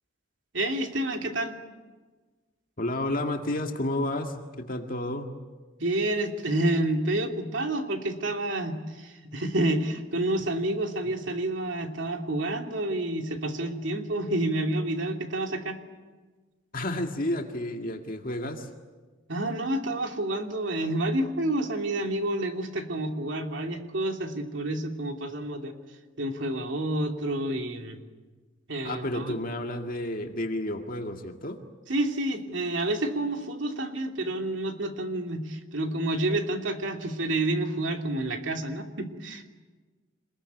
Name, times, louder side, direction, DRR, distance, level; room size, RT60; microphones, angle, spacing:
voice 1, 0.5-1.6 5.8-15.8 19.3-25.7 26.2-28.0 28.7-29.3 31.9-39.5, right 1 dB, 70° right, 4 dB, 2.9 m, -29 dB
voice 2, 2.8-5.3 16.7-18.7 28.8-31.6, left 1 dB, 45° left, 3 dB, 2.0 m, -31 dB
27.0 x 21.0 x 9.5 m, 1.3 s
head